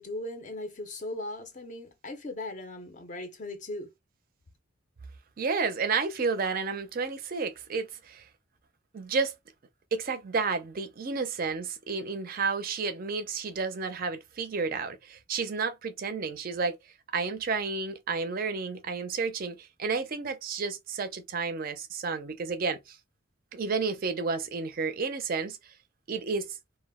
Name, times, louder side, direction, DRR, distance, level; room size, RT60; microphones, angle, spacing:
voice 1, 0.0-3.9, left 1 dB, 35° left, 0.5 m, -38 dB
voice 2, 5.4-8.3 8.9-9.3 9.9-16.8 17.1-23.0 23.5-25.7 26.1-26.6, right 4 dB, 40° right, 0.4 m, -31 dB
2.2 x 2.0 x 3.4 m
head